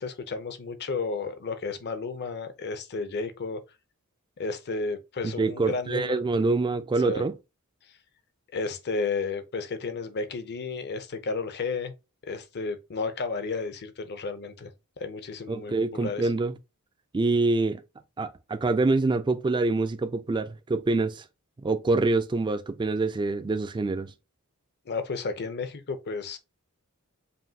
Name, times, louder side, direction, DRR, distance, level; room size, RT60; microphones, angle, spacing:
voice 1, 0.0-3.6 4.4-6.2 7.0-7.2 8.5-11.9 12.3-14.7 15.0-16.3 24.9-26.4, left 4 dB, 50° left, 0.7 m, -32 dB
voice 2, 5.2-7.3 15.5-16.5 17.1-17.8 18.2-21.2 21.6-24.1, right 3 dB, 20° right, 0.3 m, -25 dB
5.2 x 2.6 x 2.8 m
head